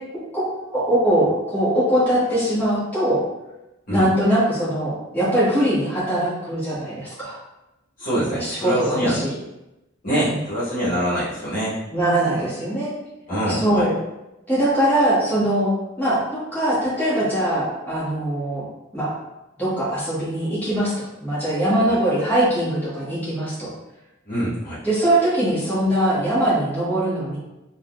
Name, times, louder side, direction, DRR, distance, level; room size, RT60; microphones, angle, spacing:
voice 1, 0.3-3.2 3.9-7.4 8.4-9.3 10.3-10.4 11.9-12.9 13.5-13.9 14.5-15.7 16.0-18.6 18.9-19.1 19.6-20.9 21.2-23.7 24.8-27.4, right 1 dB, 10° left, -11 dB, 1.2 m, -21 dB
voice 2, 8.0-9.2 10.0-11.7 12.3-12.5 13.3-13.9 21.9-22.0 24.2-24.8, equal, 45° left, -11 dB, 1.1 m, -24 dB
3.5 x 2.4 x 2.3 m, 0.95 s
head